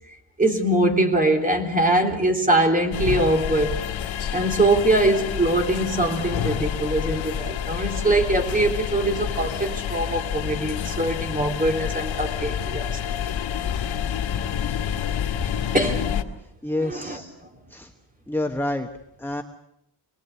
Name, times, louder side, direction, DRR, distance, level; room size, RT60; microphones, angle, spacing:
voice 1, 0.4-3.8 4.3-12.9 15.7-16.1 16.8-17.2, right 1 dB, 20° right, 3 dB, 3.5 m, -22 dB
sound 1, 2.9-16.2, left 9 dB, 90° left, 2.1 m, -28 dB
voice 2, 16.6-17.3 17.7-17.9 18.3-18.9 19.2-19.4, left 1 dB, 5° left, 5 dB, 1.1 m, -28 dB
27.0 x 20.5 x 8.3 m, 0.80 s
wide cardioid pair, 155°, 45 cm